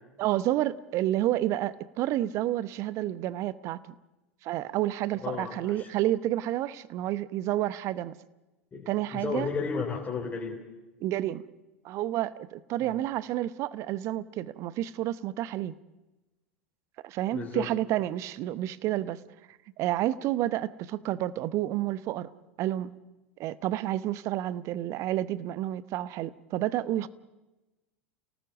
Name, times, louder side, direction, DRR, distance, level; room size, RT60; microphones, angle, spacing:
voice 1, 0.2-3.9 4.4-8.2 8.9-9.5 11.0-11.4 11.8-15.7 17.0-19.2 19.8-22.3 22.6-22.9 23.4-27.1, right 14 dB, 45° right, 0.9 m, -30 dB
voice 2, 5.2-5.9 8.7-10.6 12.9-13.0 17.3-17.7, left 5 dB, 25° left, 3.4 m, -33 dB
29.5 x 18.5 x 7.2 m
figure-of-eight pair, 80°, 7 cm